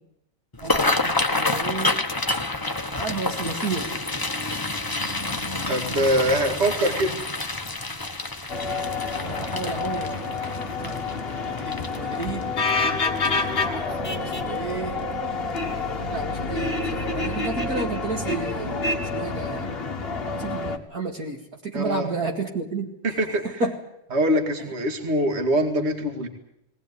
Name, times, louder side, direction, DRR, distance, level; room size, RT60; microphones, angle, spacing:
sound 1, 0.5-13.7 14.1-14.4 14.7-15.2 15.6-15.7 16.9-17.1 17.5-17.6 18.1-18.2, left 2 dB, 15° left, 0.9 m, -28 dB
voice 1, 0.6-2.0 2.9-3.9 5.9-6.5 6.8-6.9 9.2-11.0 11.5-12.5 13.0-15.0 16.1-18.8 19.1-19.7 20.3-22.9 23.4-23.7, right 3 dB, 50° right, 2 dB, 2.5 m, -32 dB
voice 2, 5.7-7.2 21.7-22.1 23.0-23.6 24.1-26.3, equal, 35° right, 5 dB, 2.4 m, -23 dB
sound 2, 8.5-20.8, left 3 dB, 35° left, 1.6 m, -28 dB
19.5 x 18.5 x 9.7 m, 0.81 s
omnidirectional pair, 2.0 m